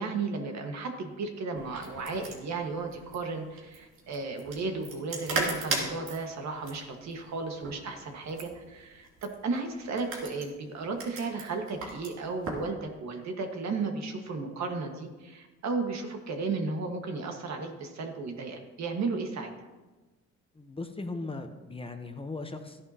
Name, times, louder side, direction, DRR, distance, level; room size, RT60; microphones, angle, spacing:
voice 1, 0.0-19.7, right 4 dB, 65° right, 3 dB, 1.6 m, -34 dB
sound 1, 1.6-12.7, right 3 dB, 80° right, 3.0 m, -38 dB
voice 2, 20.5-22.8, left 3 dB, 20° left, 6 dB, 1.0 m, -38 dB
13.5 x 10.5 x 2.9 m, 1.2 s
cardioid pair, 90°, 30 cm